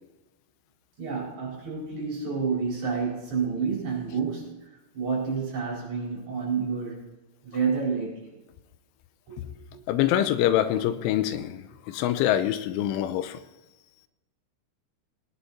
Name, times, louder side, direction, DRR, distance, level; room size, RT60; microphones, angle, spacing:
voice 1, 1.0-7.1 7.4-8.3 9.3-9.8, right 5 dB, 40° right, -4 dB, 5.8 m, -30 dB
voice 2, 9.9-13.4, left 12 dB, 85° left, 11 dB, 3.3 m, -25 dB
19.5 x 10.0 x 4.3 m, 1.1 s
omnidirectional pair, 5.5 m